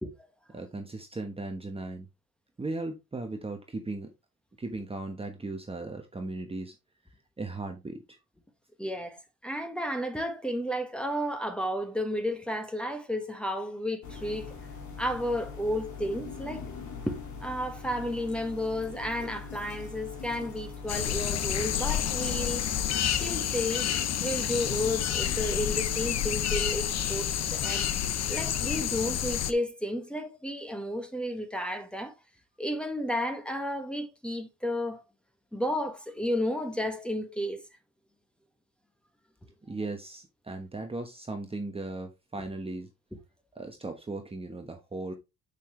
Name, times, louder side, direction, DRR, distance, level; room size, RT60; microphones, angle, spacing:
voice 1, 0.5-2.1 2.6-4.1 4.6-6.7 7.4-8.2 39.7-42.9 43.5-45.1, right 2 dB, 20° right, 1.2 m, -37 dB
voice 2, 8.8-14.6 15.0-16.7 17.1-22.7 23.1-23.9 24.2-27.9 28.3-32.1 32.6-35.0 35.5-37.6, equal, 5° left, 1.6 m, -32 dB
sound 1, 14.0-28.0, left 5 dB, 75° left, 2.3 m, -42 dB
sound 2, 20.9-29.5, left 10 dB, 60° left, 0.8 m, -29 dB
6.8 x 5.5 x 3.2 m
cardioid pair, 90°, 30 cm